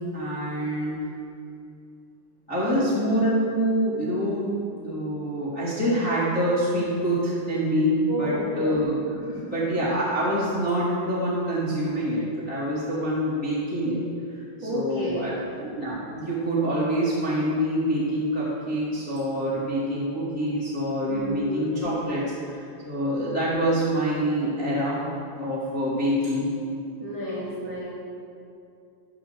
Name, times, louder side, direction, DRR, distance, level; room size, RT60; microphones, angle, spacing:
voice 1, 0.1-1.0 2.5-8.9 9.5-14.0 14.3-15.3 15.6-22.2 22.5-25.0 25.4-26.5, equal, 30° left, -10 dB, 1.5 m, -26 dB
voice 2, 8.1-8.8 9.3-9.4 14.6-15.3 21.1-21.8 27.0-27.9, equal, 60° right, -8 dB, 1.2 m, -31 dB
14.0 x 5.7 x 6.7 m, 2.5 s
omnidirectional pair, 5.6 m